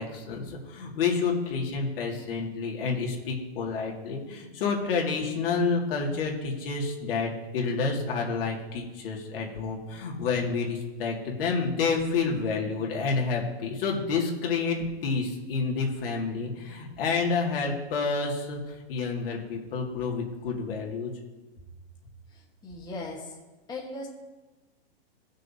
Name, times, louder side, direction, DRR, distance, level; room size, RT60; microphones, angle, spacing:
voice 1, 0.0-21.1, left 4 dB, 60° left, -1 dB, 2.2 m, -29 dB
voice 2, 22.3-23.4 23.7-24.1, left 2 dB, 15° left, -2 dB, 1.1 m, -38 dB
16.5 x 6.4 x 2.8 m, 1.2 s
hypercardioid pair, 140°, 32 cm